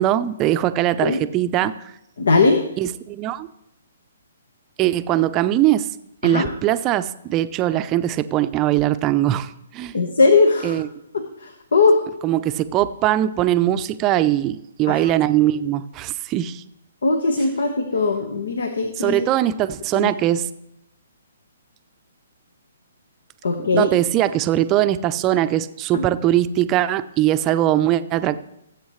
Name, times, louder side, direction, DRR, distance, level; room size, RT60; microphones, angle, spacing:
voice 1, 0.0-1.9 2.8-3.5 4.8-5.9 6.2-10.0 10.6-10.9 12.2-16.6 19.0-20.5 23.7-28.4, right 13 dB, 25° right, 12 dB, 0.6 m, -21 dB
voice 2, 2.2-2.6 6.2-6.5 9.9-10.8 11.1-12.0 14.9-15.0 17.0-19.2 19.9-20.1 23.4-23.9 25.9-26.0, left 3 dB, 75° left, 6 dB, 1.3 m, -19 dB
20.0 x 8.1 x 3.2 m, 0.84 s
hypercardioid pair, 135°, 0 cm